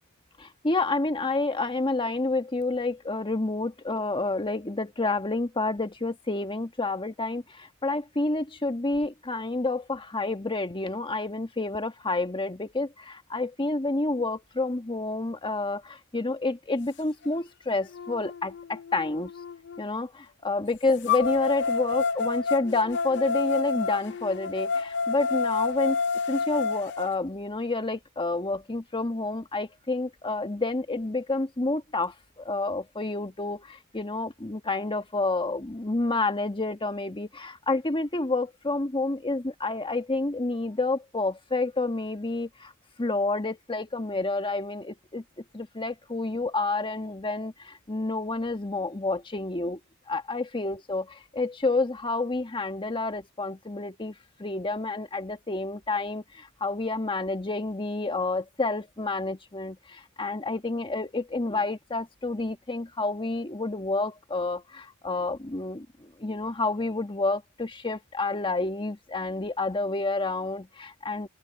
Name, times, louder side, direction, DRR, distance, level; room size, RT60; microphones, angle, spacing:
voice 1, 0.4-19.3 19.8-26.0 26.3-42.7 43.0-45.2 45.5-49.8 50.1-54.1 54.4-71.3, left 2 dB, 25° left, 1.3 m, -29 dB
sound 1, 17.2-17.3 17.9-19.8 21.1-27.1, left 4 dB, 55° left, 0.6 m, -29 dB
open air
head